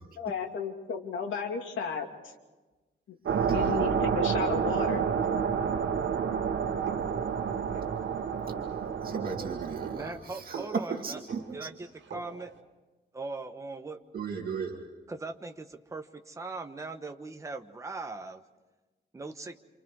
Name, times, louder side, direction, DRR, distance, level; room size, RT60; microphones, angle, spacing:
voice 1, 0.2-2.1 3.1-3.2 3.5-5.1, left 6 dB, 85° left, 2 dB, 2.9 m, -33 dB
sound 1, 3.3-10.1, right 7 dB, 90° right, 1.6 m, -29 dB
sound 2, 6.8-12.6, right 6 dB, 65° right, 2.8 m, -44 dB
voice 2, 9.0-11.7 14.1-14.8, right 5 dB, 50° right, 0 dB, 2.4 m, -35 dB
voice 3, 9.9-11.2 11.5-12.5 13.1-14.0 15.1-18.4 19.1-19.6, right 3 dB, 15° right, 5 dB, 1.2 m, -40 dB
28.5 x 28.0 x 4.8 m, 1.2 s
wide cardioid pair, 175°, 19 cm